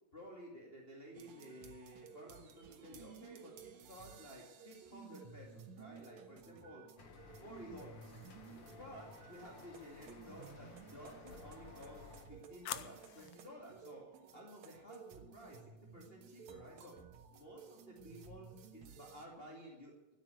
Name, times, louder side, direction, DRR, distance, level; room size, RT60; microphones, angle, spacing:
voice 1, 0.1-6.8 7.4-8.1 8.8-14.1 14.3-17.0 17.3-20.0, equal, 20° left, -3 dB, 2.3 m, -54 dB
sound 1, 1.1-19.3, right 6 dB, 75° right, 2.6 m, -56 dB
sound 2, 7.0-12.2, left 4 dB, 50° left, 3.0 m, -56 dB
sound 3, 8.3-9.0 11.4-13.5, left 12 dB, 70° left, 1.8 m, -49 dB
13.5 x 9.7 x 9.2 m, 0.99 s
omnidirectional pair, 3.3 m